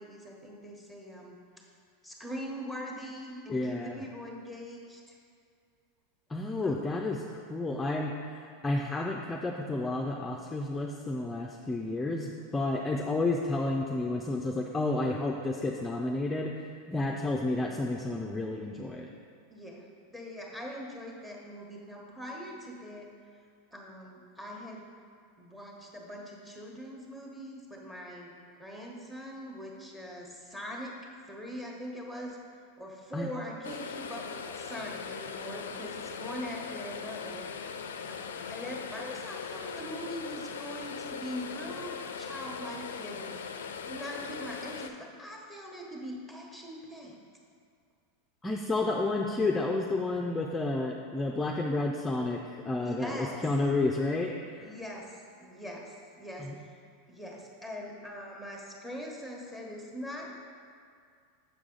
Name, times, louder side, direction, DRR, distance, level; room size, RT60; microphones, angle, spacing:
voice 1, 0.0-1.4 2.0-5.2 6.6-6.8 19.5-23.1 23.7-24.9 25.4-28.3 28.6-31.0 31.3-32.4 32.8-37.5 38.1-47.2 52.6-53.5 54.6-56.8 57.1-60.3, equal, 5° right, -1 dB, 1.2 m, -42 dB
voice 2, 3.5-4.0 6.3-7.2 7.5-16.5 16.9-19.1 33.1-33.3 48.4-54.7 56.4-56.5, left 2 dB, 15° left, 0 dB, 0.4 m, -31 dB
sound 1, 33.6-44.9, left 6 dB, 80° left, 0.3 m, -40 dB
7.0 x 4.8 x 3.8 m, 2.3 s
hypercardioid pair, 95°, 0 cm